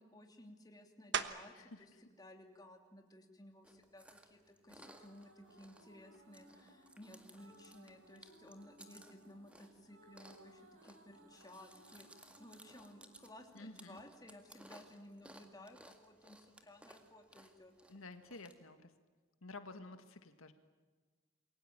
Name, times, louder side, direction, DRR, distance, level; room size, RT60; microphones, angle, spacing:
voice 1, 0.0-17.7, left 1 dB, 20° left, 3 dB, 3.0 m, -57 dB
sound 1, 1.1-1.7 2.3-6.7 7.2-12.4 12.7-18.3, right 7 dB, 55° right, 1.3 m, -50 dB
voice 2, 1.5-2.0 13.5-14.0 17.9-18.9 19.4-20.5, left 3 dB, 85° left, 9 dB, 1.7 m, -52 dB
Chewing mastication, 3.6-18.5, right 1 dB, 5° right, 1.9 m, -61 dB
sound 2, 4.4-15.5, right 1 dB, 80° right, 5.2 m, -64 dB
28.0 x 22.5 x 8.9 m, 1.4 s
head